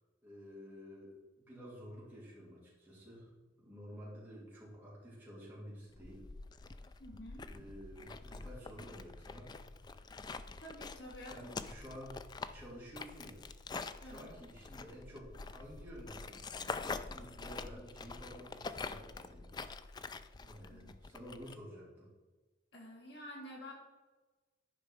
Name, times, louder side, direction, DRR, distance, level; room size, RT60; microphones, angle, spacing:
voice 1, 0.2-6.3 6.7-6.9 7.5-9.5 11.1-13.4 14.0-19.5 20.4-22.1, equal, 10° right, -7 dB, 3.1 m, -51 dB
sound 1, 5.9-21.5, left 4 dB, 25° left, 0.3 m, -46 dB
voice 2, 7.0-7.5 10.6-11.3 14.0-14.3 20.7-20.9 22.7-23.7, equal, 65° left, -3 dB, 3.2 m, -49 dB
10.5 x 5.1 x 4.9 m, 1.2 s
head